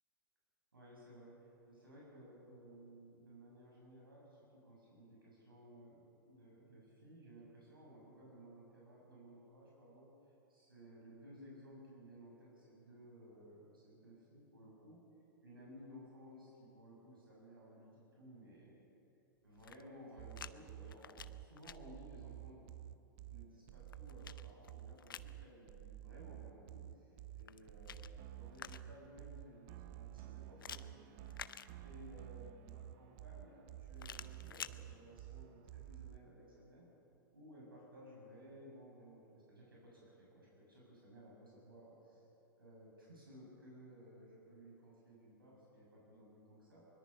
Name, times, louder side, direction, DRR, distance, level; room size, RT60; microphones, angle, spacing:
voice 1, 0.7-10.1 10.5-15.0 15.4-18.9 19.4-22.7 23.3-31.2 31.8-36.9 37.3-42.3 42.6-46.8, equal, 85° right, -4 dB, 6.8 m, -58 dB
sound 1, 19.5-20.5 20.8-21.8 23.5-25.3 27.3-29.1 30.6-32.2 34.0-34.8, left 8 dB, 75° left, 0.7 m, -51 dB
sound 2, 20.2-36.2, right 14 dB, 45° right, 0.6 m, -52 dB
23.5 x 21.5 x 5.6 m, 2.8 s
figure-of-eight pair, 105°, 12 cm